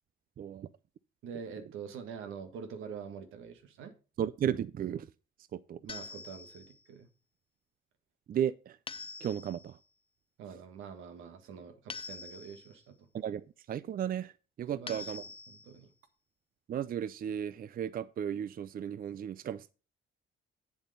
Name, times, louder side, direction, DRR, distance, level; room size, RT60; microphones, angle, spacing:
voice 1, 0.4-0.7 4.2-5.1 5.5-5.8 8.3-8.8 9.2-9.8 13.1-13.4 13.7-14.3 14.6-15.2 16.7-19.7, right 9 dB, 45° right, 0.5 m, -34 dB
voice 2, 1.2-3.9 5.8-7.1 10.4-13.1 14.7-15.9, right 6 dB, 90° right, 1.5 m, -45 dB
sound 1, 5.9-6.8 8.9-9.7 11.9-12.8 14.9-15.8, left 4 dB, 25° left, 0.7 m, -45 dB
8.3 x 7.1 x 5.4 m
cardioid pair, 90°, 20 cm